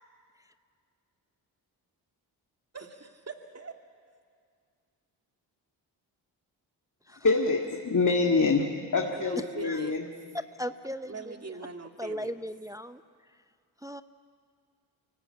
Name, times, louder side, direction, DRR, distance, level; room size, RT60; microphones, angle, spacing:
voice 1, 2.7-3.7 9.1-10.1 11.1-12.3, right 3 dB, 30° right, 4 dB, 2.5 m, -42 dB
voice 2, 7.2-10.0, left 3 dB, 40° left, 1 dB, 2.2 m, -25 dB
voice 3, 10.6-11.3 12.0-13.0 13.8-14.0, equal, 5° right, 11 dB, 0.7 m, -37 dB
24.0 x 18.5 x 8.7 m, 2.2 s
supercardioid pair, 45°, 48 cm